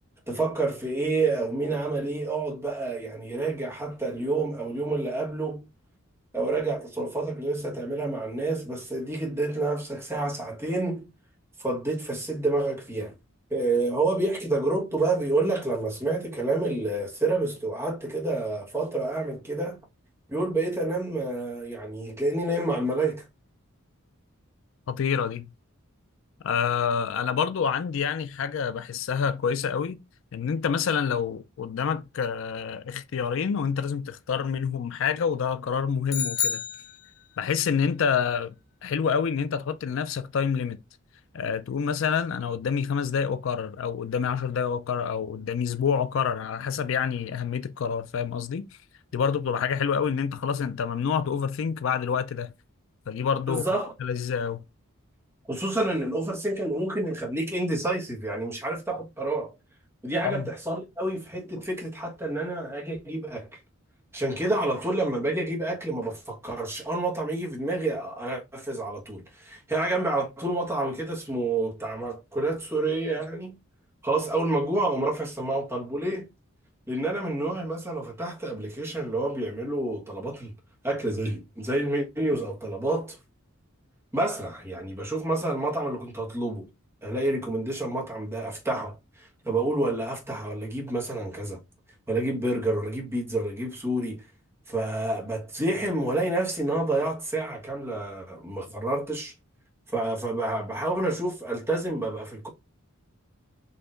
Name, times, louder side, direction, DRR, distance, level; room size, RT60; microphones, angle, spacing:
voice 1, 0.3-5.7 6.3-11.1 11.6-13.1 13.5-19.8 20.3-23.3 53.5-53.9 55.5-59.5 60.0-63.6 64.1-73.6 74.0-76.3 76.9-80.5 80.8-83.2 84.1-86.7 87.0-91.6 92.1-94.2 94.7-99.3 99.9-102.5, right 2 dB, 10° right, 1.3 m, -28 dB
voice 2, 24.9-25.5 26.4-30.0 30.3-36.6 37.4-38.5 38.8-40.8 41.3-48.7 49.1-52.5 53.1-53.6 54.0-54.6 60.2-60.4, left 6 dB, 60° left, 0.4 m, -27 dB
sound 1, 36.1-37.5, left 7 dB, 80° left, 0.8 m, -30 dB
4.2 x 2.8 x 3.8 m
head